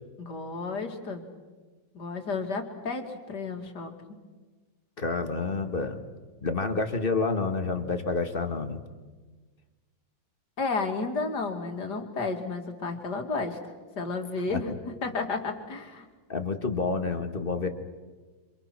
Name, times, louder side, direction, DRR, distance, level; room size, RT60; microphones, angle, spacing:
voice 1, 0.2-1.2 1.9-4.2 10.6-13.6 13.9-14.7 15.0-16.0, left 3 dB, 60° left, 4 dB, 3.0 m, -32 dB
voice 2, 5.0-6.0 6.4-8.8 14.5-14.7 16.3-17.7, left 4 dB, 30° left, 7 dB, 1.8 m, -29 dB
27.0 x 27.0 x 6.1 m, 1.3 s
omnidirectional pair, 2.0 m